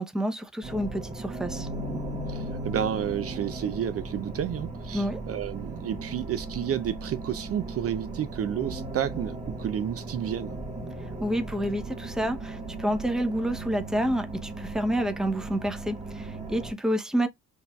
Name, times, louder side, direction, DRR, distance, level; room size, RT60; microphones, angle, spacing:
voice 1, 0.0-1.7 4.9-5.2 11.2-17.3, equal, ahead, 0.8 m, -29 dB
sound 1, 0.6-16.7, right 2 dB, 20° right, 1.4 m, -37 dB
voice 2, 2.3-10.6, right 9 dB, 50° right, 0.5 m, -31 dB
6.4 x 2.6 x 2.3 m
cardioid pair, 90°, 30 cm